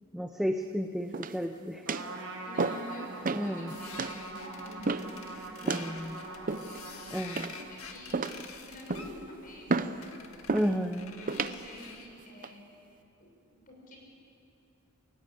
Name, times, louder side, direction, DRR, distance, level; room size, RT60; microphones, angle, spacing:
voice 1, 0.1-1.9 3.3-3.7 5.6-6.2 7.1-7.6 10.5-11.1, equal, ahead, 5 dB, 0.7 m, -32 dB
sound 1, 1.1-1.5 1.9-2.1 2.6-2.9 3.2-3.5 4.0-4.2 4.9-5.2 5.7-5.9 6.5-6.9 7.4-7.7 8.1-8.5 8.9-9.2 9.7-10.0 10.5-10.7 11.3-11.6 12.2-12.5, right 3 dB, 40° right, 0.7 m, -32 dB
Trumpet, 1.8-8.0, right 2 dB, 65° right, 5.5 m, -44 dB
voice 2, 2.2-10.2 10.6-12.6 13.2-13.3 13.7-14.0, left 1 dB, 40° left, 0 dB, 6.3 m, -48 dB
sound 2, 3.7-12.2, left 6 dB, 75° left, 1.8 m, -48 dB
28.5 x 16.5 x 8.5 m, 2.6 s
head